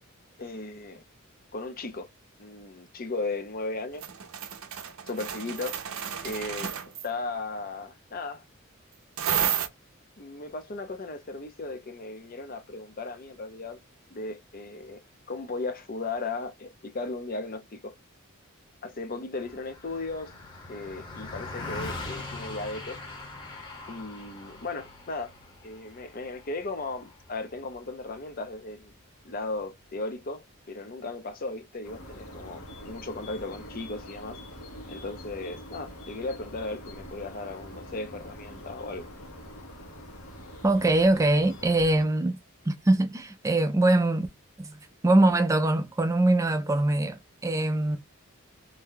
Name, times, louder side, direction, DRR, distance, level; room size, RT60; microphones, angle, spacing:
voice 1, 0.4-1.0 1.5-2.1 2.4-4.0 5.1-5.8 6.2-6.7 7.0-8.4 10.2-13.8 14.1-15.0 15.3-17.9 18.8-20.3 20.7-23.0 23.9-25.3 25.6-28.9 29.2-34.4 34.9-39.1, left 3 dB, 40° left, 0.6 m, -36 dB
sound 1, 4.0-7.1 9.2-9.7, right 9 dB, 70° right, 0.5 m, -31 dB
Car passing by, 19.4-29.0, left 3 dB, 20° left, 0.9 m, -42 dB
sound 2, 31.8-42.0, equal, 80° left, 1.1 m, -44 dB
voice 2, 40.6-42.4 42.7-44.3 44.6-48.0, right 2 dB, 15° right, 0.4 m, -23 dB
2.7 x 2.2 x 3.6 m
head